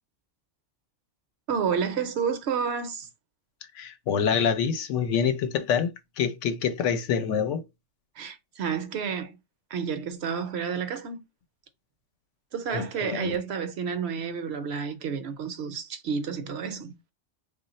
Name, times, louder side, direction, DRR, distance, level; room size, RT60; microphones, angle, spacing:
voice 1, 1.5-3.1 8.2-9.4 9.7-11.2 12.5-17.0, right 6 dB, 70° right, 0.8 m, -30 dB
voice 2, 3.7-5.9 6.2-7.6 12.7-13.3, left 7 dB, 85° left, 0.9 m, -26 dB
3.1 x 2.4 x 4.0 m
omnidirectional pair, 1.2 m